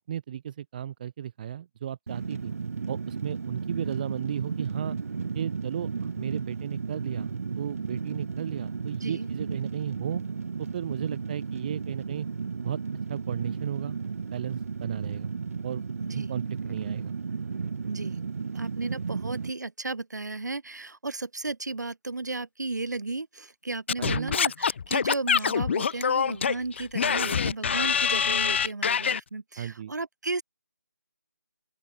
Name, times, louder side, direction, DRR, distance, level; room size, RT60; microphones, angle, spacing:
voice 1, 0.1-2.5 2.9-5.0 5.3-10.2 10.6-12.3 12.6-12.8 13.1-14.0 14.3-15.3 15.6-15.8 16.1-17.2 24.0-24.3 29.6-29.9, right 10 dB, 30° right, 0.9 m, -35 dB
Fire, 2.1-19.5, right 5 dB, 55° right, 0.9 m, -34 dB
voice 2, 16.0-16.3 17.9-30.4, right 3 dB, 75° right, 5.0 m, -34 dB
Singing / Scratching (performance technique), 23.9-29.2, left 7 dB, 40° left, 0.8 m, -25 dB
open air
figure-of-eight pair, 155°, 10 cm